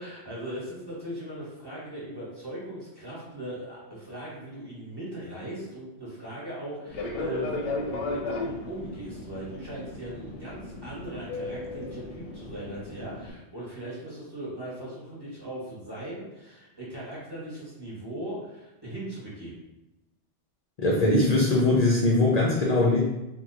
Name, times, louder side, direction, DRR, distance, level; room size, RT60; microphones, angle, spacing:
voice 1, 0.0-19.6, right 1 dB, 20° right, -7 dB, 0.9 m, -39 dB
Fixed-wing aircraft airplane, 6.9-13.3, left 2 dB, 90° left, 0.9 m, -35 dB
voice 2, 20.8-23.0, left 2 dB, 55° left, -4 dB, 0.4 m, -21 dB
2.9 x 2.1 x 3.6 m, 0.97 s
omnidirectional pair, 1.2 m